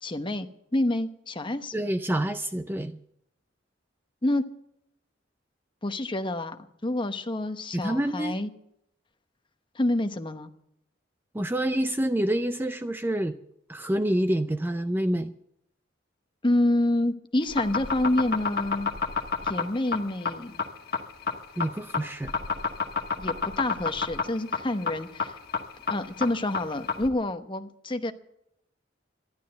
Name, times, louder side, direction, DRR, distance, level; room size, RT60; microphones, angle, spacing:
voice 1, 0.0-1.7 4.2-4.4 5.8-8.5 9.7-10.5 16.4-18.9 19.4-20.6 23.2-25.4 25.9-28.1, left 1 dB, 25° left, 8 dB, 0.9 m, -28 dB
voice 2, 1.7-3.0 7.7-8.3 11.3-13.3 13.7-15.3 21.6-22.3, right 1 dB, 10° right, 10 dB, 0.4 m, -27 dB
sound 1, 17.4-27.1, left 5 dB, 55° left, 1.5 m, -28 dB
13.0 x 11.5 x 7.7 m, 0.77 s
head